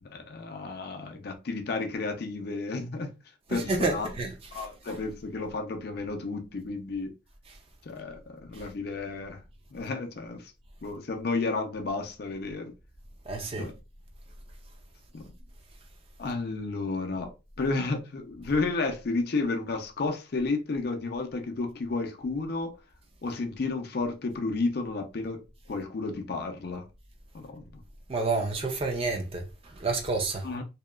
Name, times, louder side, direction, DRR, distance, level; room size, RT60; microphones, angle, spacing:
voice 1, 0.0-3.1 3.5-4.1 4.5-7.1 7.9-9.4 9.7-10.5 10.8-12.7 13.6-13.7 15.1-15.3 16.2-22.8 23.2-26.9 27.3-27.7 30.4-30.6, left 3 dB, 55° left, 0.5 m, -32 dB
voice 2, 3.5-5.0 7.5-7.6 8.5-8.6 13.3-13.7 28.1-30.5, right 3 dB, 30° right, 0.4 m, -30 dB
2.8 x 2.2 x 2.2 m
head